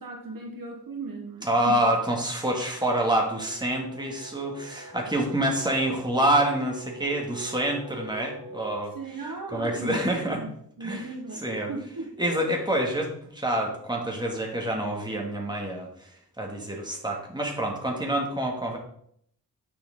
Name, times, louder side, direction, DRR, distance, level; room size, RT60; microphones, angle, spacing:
voice 1, 0.0-1.8 8.9-12.2, right 3 dB, 55° right, 2 dB, 1.3 m, -37 dB
voice 2, 1.4-8.9 9.5-10.4 10.8-11.1 11.4-11.7 12.2-16.1 16.4-18.8, right 1 dB, 10° right, -1 dB, 2.1 m, -27 dB
sound 1, 2.5-8.7, right 3 dB, 40° right, 3.6 m, -44 dB
9.4 x 6.9 x 3.7 m, 0.67 s
wide cardioid pair, 90°, 40 cm